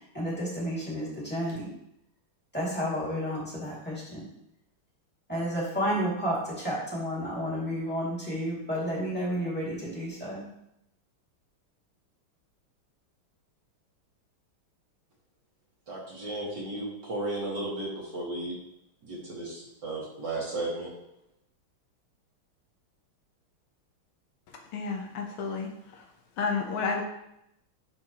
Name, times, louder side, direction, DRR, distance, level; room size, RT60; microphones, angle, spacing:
voice 1, 0.1-1.7 2.5-4.3 5.3-10.5, equal, 5° left, -7 dB, 2.2 m, -31 dB
voice 2, 15.9-18.6 19.0-20.9, right 2 dB, 55° right, -5 dB, 2.4 m, -34 dB
voice 3, 24.7-26.0 26.4-27.0, left 5 dB, 90° left, 2 dB, 1.9 m, -31 dB
10.0 x 4.2 x 3.0 m, 0.79 s
omnidirectional pair, 2.3 m